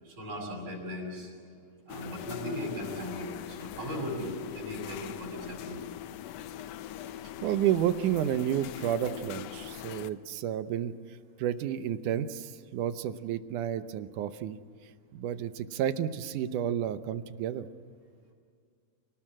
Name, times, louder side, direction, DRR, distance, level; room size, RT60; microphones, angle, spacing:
voice 1, 0.0-1.3 1.9-5.8, left 1 dB, 60° right, -1 dB, 8.2 m, -38 dB
sound 1, 1.9-10.2, left 12 dB, 75° left, 1.5 m, -42 dB
voice 2, 7.4-10.9 11.4-14.6 15.1-17.7, right 10 dB, 80° right, 11 dB, 2.3 m, -31 dB
29.5 x 19.0 x 7.5 m, 2.1 s
omnidirectional pair, 3.7 m